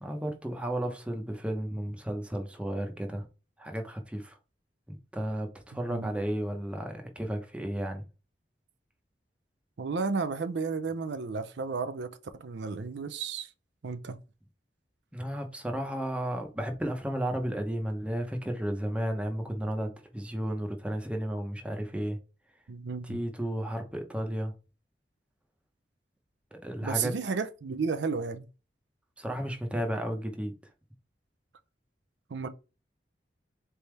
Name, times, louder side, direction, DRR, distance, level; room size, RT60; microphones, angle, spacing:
voice 1, 0.0-3.3 3.6-4.3 4.9-8.0 15.1-22.2 23.0-24.5 26.5-27.1 29.2-30.5, right 1 dB, 5° right, 0.8 m, -33 dB
voice 2, 5.7-6.1 9.8-12.1 12.4-13.5 13.8-14.2 22.7-23.2 26.8-28.5 32.3-32.5, right 4 dB, 75° right, 0.5 m, -33 dB
4.1 x 3.4 x 3.3 m
head